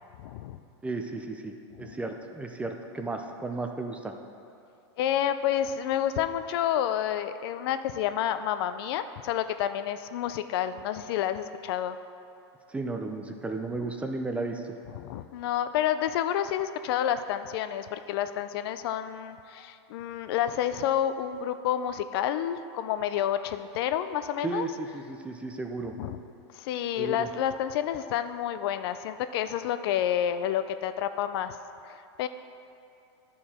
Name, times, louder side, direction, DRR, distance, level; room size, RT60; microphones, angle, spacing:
voice 1, 0.2-0.6 1.8-2.0 5.0-12.0 14.9-24.7 26.0-26.2 26.5-31.6 31.8-32.3, left 10 dB, 60° left, 11 dB, 0.4 m, -29 dB
voice 2, 0.8-4.1 12.7-14.7 24.4-26.0 27.0-27.3, right 3 dB, 10° right, 4 dB, 0.4 m, -34 dB
11.0 x 4.6 x 4.2 m, 2.6 s
supercardioid pair, 135°, 15 cm